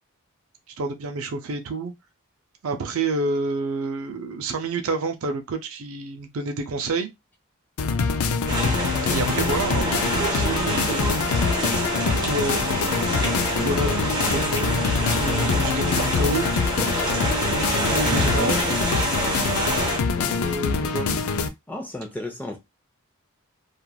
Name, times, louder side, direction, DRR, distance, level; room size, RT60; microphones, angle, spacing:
voice 1, 0.8-1.9 2.6-7.1 9.1-11.1 11.6-12.7 13.4-16.5 18.0-18.7 20.1-21.1, right 3 dB, 65° right, 0.5 m, -29 dB
sound 1, 7.8-21.5, left 5 dB, 70° left, 0.4 m, -25 dB
sound 2, 8.5-20.0, right 1 dB, 20° right, 0.9 m, -26 dB
voice 2, 20.1-20.4 21.7-22.6, left 1 dB, 10° left, 0.6 m, -34 dB
3.0 x 2.4 x 2.2 m
head